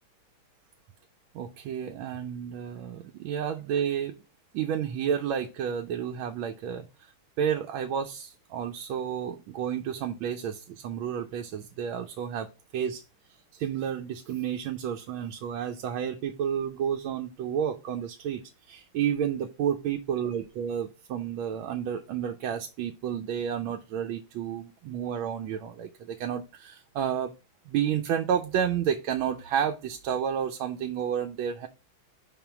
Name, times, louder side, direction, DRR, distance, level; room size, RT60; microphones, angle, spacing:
voice 1, 1.3-4.2 4.5-7.1 7.4-12.5 12.7-13.0 13.5-27.3 27.7-31.7, right 8 dB, 85° right, 5 dB, 1.4 m, -31 dB
5.1 x 3.7 x 5.7 m, 0.30 s
omnidirectional pair, 2.2 m